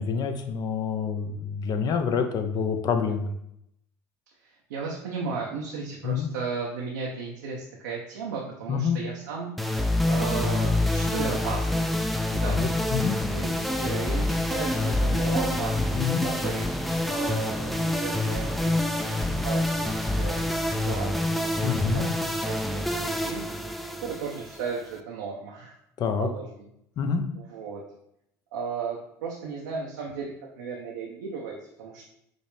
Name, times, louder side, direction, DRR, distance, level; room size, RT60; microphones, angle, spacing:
voice 1, 0.0-3.3 6.0-6.3 8.7-9.0 12.4-13.2 15.9-16.2 21.6-22.1 26.0-26.3 27.0-27.2, left 6 dB, 50° left, 7 dB, 0.5 m, -27 dB
voice 2, 4.4-12.0 12.3-12.7 13.3-15.8 16.2-19.1 19.4-22.1 22.4-23.4 23.9-25.8 26.2-26.5 27.3-27.8 28.5-32.0, right 5 dB, 85° right, -2 dB, 0.6 m, -35 dB
sound 1, 9.6-25.0, left 1 dB, ahead, 0.4 m, -27 dB
5.1 x 2.0 x 3.2 m, 0.76 s
hypercardioid pair, 75°, 9 cm